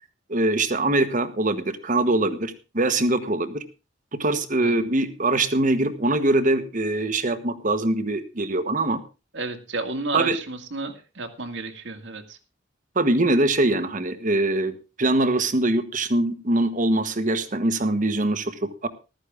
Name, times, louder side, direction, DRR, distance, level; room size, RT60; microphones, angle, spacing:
voice 1, 0.3-3.6 4.1-9.0 10.1-10.4 12.9-18.9, right 2 dB, 40° right, 10 dB, 1.3 m, -23 dB
voice 2, 9.3-12.4, right 3 dB, 65° right, 6 dB, 2.0 m, -32 dB
14.5 x 13.0 x 3.6 m, 0.31 s
head